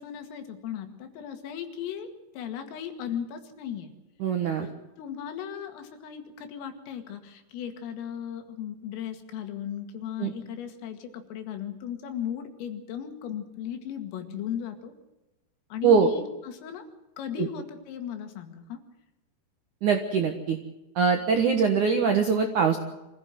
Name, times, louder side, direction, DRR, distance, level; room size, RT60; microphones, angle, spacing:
voice 1, 0.0-2.1 2.3-3.9 4.6-4.7 5.0-14.9 15.7-16.8 17.2-18.8, left 9 dB, 85° left, 6 dB, 4.7 m, -36 dB
voice 2, 4.2-4.7 10.2-10.3 15.8-16.1 17.4-17.5 19.8-20.6 21.0-22.8, right 6 dB, 70° right, 5 dB, 1.8 m, -22 dB
25.5 x 15.5 x 7.7 m, 1.0 s
omnidirectional pair, 5.8 m